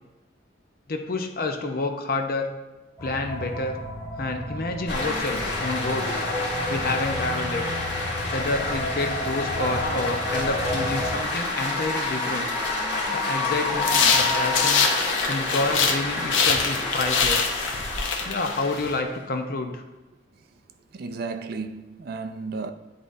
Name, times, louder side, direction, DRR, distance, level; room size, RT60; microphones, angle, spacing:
voice 1, 0.9-2.5 3.0-3.8 4.2-6.3 6.7-7.6 8.3-12.5 13.1-14.9 15.3-17.5 18.2-19.8, left 2 dB, 50° left, 0.6 m, -29 dB
sound 1, 3.0-11.1, left 1 dB, 15° left, 1.0 m, -32 dB
sound 2, 4.9-19.1, left 2 dB, 70° left, 1.9 m, -29 dB
sound 3, 13.8-16.0 16.3-18.9, left 5 dB, 85° left, 0.7 m, -24 dB
voice 2, 13.9-14.3 20.9-22.7, right 4 dB, 55° right, 0.4 m, -34 dB
9.6 x 3.9 x 2.5 m
head